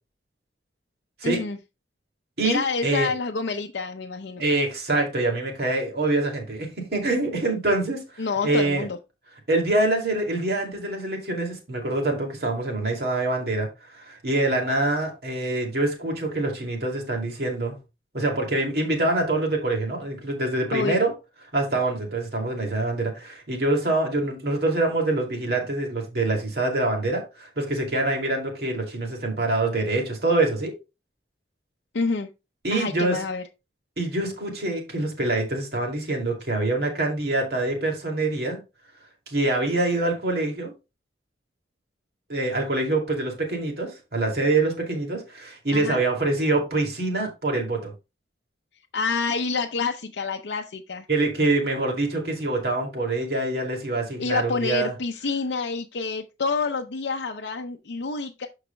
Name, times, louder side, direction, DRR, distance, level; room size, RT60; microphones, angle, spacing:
voice 1, 1.2-1.6 2.4-4.4 8.2-9.0 20.7-21.0 31.9-32.3 32.7-33.4 45.7-46.0 48.9-51.1 54.2-58.5, left 4 dB, 85° left, 0.6 m, -28 dB
voice 2, 2.4-3.1 4.4-8.9 9.5-13.7 13.9-17.8 18.1-21.1 21.5-30.7 32.6-33.2 34.0-38.6 39.3-40.7 42.3-47.9 51.1-54.9, right 2 dB, 60° right, 2.5 m, -25 dB
13.0 x 4.8 x 2.2 m
head